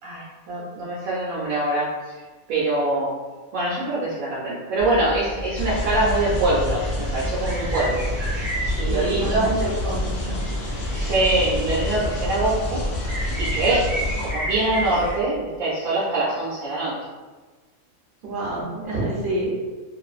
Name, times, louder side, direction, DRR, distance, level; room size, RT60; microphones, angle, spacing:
voice 1, 0.0-3.2 3.5-8.1 8.4-9.6 10.2-10.3 10.9-12.9 13.4-17.1, right 2 dB, 85° right, -6 dB, 1.1 m, -24 dB
sound 1, 4.8-15.2, equal, 5° right, 0.4 m, -32 dB
sound 2, 5.6-14.3, left 1 dB, 85° left, 0.4 m, -28 dB
voice 2, 8.9-10.4 18.2-19.5, right 1 dB, 50° right, -6 dB, 0.7 m, -28 dB
2.5 x 2.4 x 2.3 m, 1.3 s
omnidirectional pair, 1.4 m